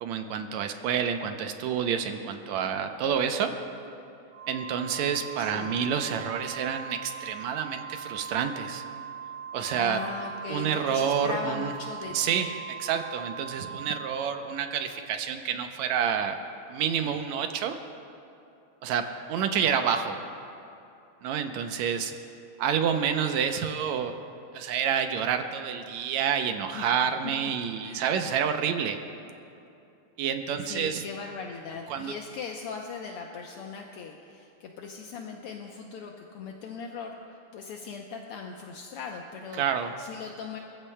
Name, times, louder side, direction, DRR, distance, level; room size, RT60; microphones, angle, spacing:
voice 1, 0.0-3.5 4.5-8.8 9.5-10.0 10.5-11.7 12.1-12.5 12.8-16.4 16.7-17.8 18.8-20.2 21.2-22.1 22.6-24.1 24.5-29.0 30.2-31.0 31.9-32.1 39.6-39.9, right 7 dB, 80° right, 6 dB, 1.9 m, -28 dB
Organ, 4.3-15.1, right 7 dB, 35° right, 4.6 m, -41 dB
voice 2, 5.4-5.7 9.7-12.4 26.7-26.9 27.8-28.1 30.6-39.6 40.0-40.6, left 5 dB, 70° left, 1 dB, 1.4 m, -39 dB
26.5 x 15.0 x 2.2 m, 2.7 s
omnidirectional pair, 3.3 m